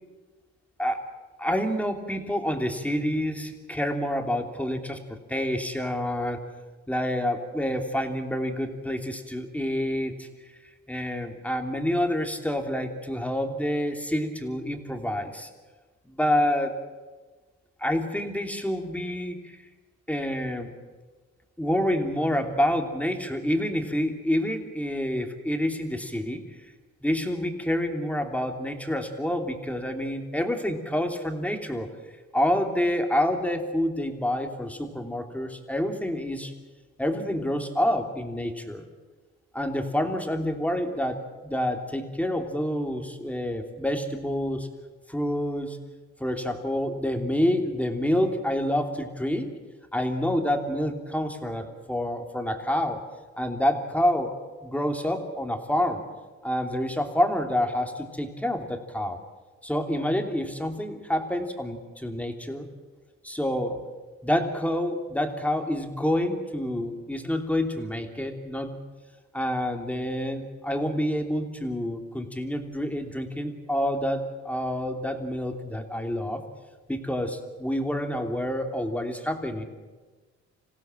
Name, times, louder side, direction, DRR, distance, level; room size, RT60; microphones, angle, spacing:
voice 1, 1.4-6.4 6.9-10.3 10.9-15.5 16.1-16.7 17.8-19.6 20.1-20.7 21.6-26.4 27.0-31.9 32.3-36.5 37.0-38.9 39.5-44.7 45.1-45.8 46.2-49.5 49.9-53.0 53.4-54.4 54.6-56.0 56.4-59.2 59.6-62.7 63.2-63.8 64.2-68.8 69.3-76.4 76.9-79.6, left 1 dB, 5° left, 4 dB, 3.0 m, -28 dB
26.5 x 16.0 x 7.7 m, 1.3 s
cardioid pair, 90°, 30 cm